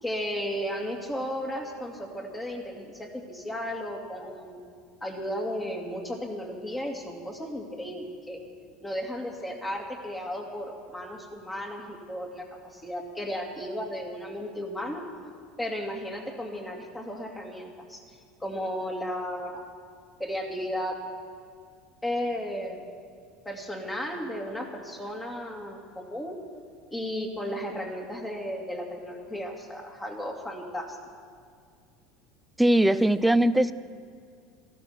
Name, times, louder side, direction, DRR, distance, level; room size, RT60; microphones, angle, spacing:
voice 1, 0.0-4.6 5.0-8.4 8.8-15.0 15.6-18.0 18.4-19.6 20.2-21.0 22.0-22.8 23.4-26.4 26.9-31.0, equal, 15° left, 0 dB, 2.6 m, -34 dB
voice 2, 32.6-33.7, right 1 dB, 5° right, 14 dB, 0.5 m, -20 dB
14.5 x 12.0 x 6.0 m, 2.2 s
hypercardioid pair, 90°, 0 cm